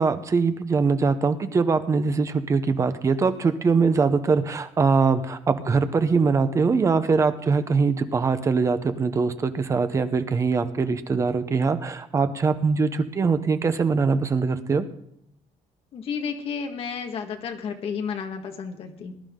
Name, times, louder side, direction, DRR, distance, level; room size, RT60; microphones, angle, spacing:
voice 1, 0.0-14.9, right 4 dB, 25° right, 10 dB, 0.8 m, -22 dB
voice 2, 15.9-19.1, left 6 dB, 50° left, 4 dB, 1.7 m, -32 dB
20.5 x 11.0 x 3.8 m, 0.75 s
cardioid pair, 170°, 13 cm